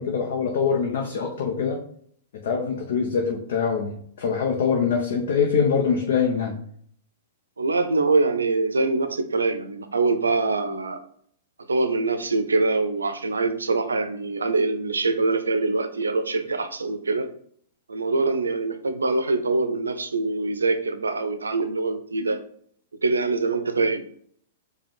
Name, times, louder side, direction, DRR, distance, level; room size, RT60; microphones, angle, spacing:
voice 1, 0.0-1.8 2.4-6.5 22.2-22.3, left 6 dB, 65° left, 1 dB, 0.7 m, -24 dB
voice 2, 7.6-11.0 11.7-17.3 17.9-22.4 23.0-24.0, right 3 dB, 90° right, 9 dB, 0.5 m, -24 dB
4.9 x 2.3 x 3.4 m, 0.63 s
hypercardioid pair, 115°, 0 cm